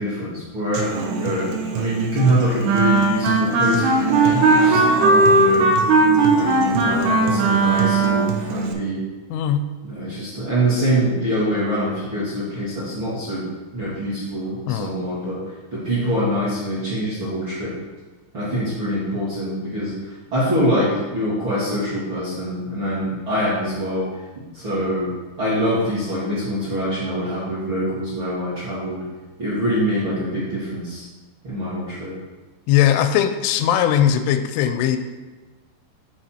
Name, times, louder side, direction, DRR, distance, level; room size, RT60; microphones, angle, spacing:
voice 1, 0.0-5.7 6.3-9.0 9.8-13.4 13.7-17.7 18.3-24.1 24.5-25.1 25.4-29.0 29.4-31.1 31.4-32.1, equal, 40° right, -10 dB, 1.9 m, -24 dB
Human voice / Acoustic guitar, 0.7-8.7, right 7 dB, 90° right, 3.2 m, -29 dB
Wind instrument woodwind instrument, 2.6-8.4, right 2 dB, 70° right, 2.6 m, -17 dB
voice 2, 9.3-9.7 14.7-14.9 32.7-35.0, left 10 dB, 90° left, 8 dB, 3.0 m, -19 dB
9.3 x 4.1 x 4.4 m, 1.3 s
omnidirectional pair, 5.3 m